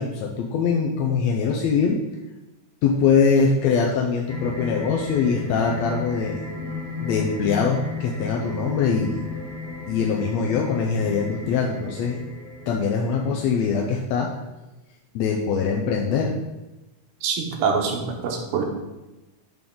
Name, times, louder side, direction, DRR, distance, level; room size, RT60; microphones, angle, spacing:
voice 1, 0.0-2.0 2.8-6.4 7.0-9.3 9.9-12.2 12.7-14.3 15.2-16.4, left 5 dB, 80° left, -1 dB, 1.7 m, -22 dB
sound 1, 4.3-14.0, left 3 dB, 15° left, 0.9 m, -34 dB
voice 2, 17.2-18.6, right 5 dB, 90° right, 2 dB, 2.5 m, -25 dB
10.5 x 3.8 x 3.8 m, 1.0 s
omnidirectional pair, 3.5 m